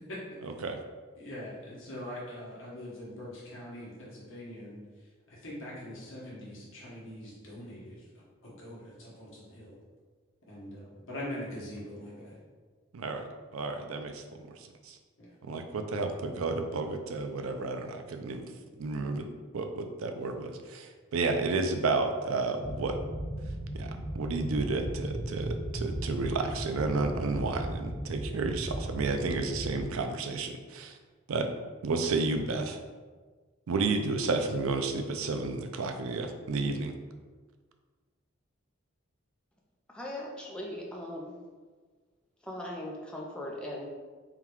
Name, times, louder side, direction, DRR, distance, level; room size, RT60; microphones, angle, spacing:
voice 1, 0.4-0.8 12.9-13.3 13.5-14.2 14.9-15.0 15.4-18.5 18.8-19.3 19.5-23.0 23.7-30.9 31.3-31.5 31.8-32.8 33.7-36.9, right 3 dB, 90° right, 6 dB, 0.4 m, -31 dB
voice 2, 1.2-4.8 5.3-9.7 10.5-12.4 15.2-15.3, left 1 dB, 70° left, -6 dB, 1.1 m, -43 dB
sound 1, 22.6-29.8, right 1 dB, 45° right, 1.0 m, -36 dB
voice 3, 39.9-41.4 42.4-43.9, left 1 dB, 5° left, -2 dB, 0.5 m, -39 dB
3.7 x 2.3 x 4.4 m, 1.4 s
head